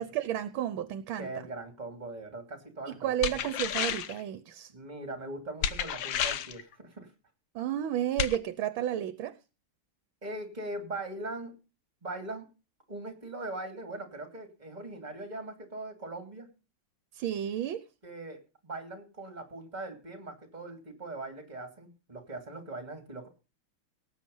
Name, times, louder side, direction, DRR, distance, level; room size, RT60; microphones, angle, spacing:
voice 1, 0.0-1.3 2.9-4.7 7.5-9.3 17.1-17.8, right 11 dB, 70° right, 13 dB, 1.5 m, -32 dB
voice 2, 1.2-3.4 4.7-7.1 10.2-11.5 12.0-12.5 12.9-16.5 18.0-23.3, right 2 dB, 20° right, 5 dB, 3.0 m, -40 dB
sound 1, 3.2-4.2 5.6-6.6 8.2-8.4, left 9 dB, 65° left, 1.4 m, -31 dB
18.5 x 7.9 x 5.5 m, 0.33 s
omnidirectional pair, 2.4 m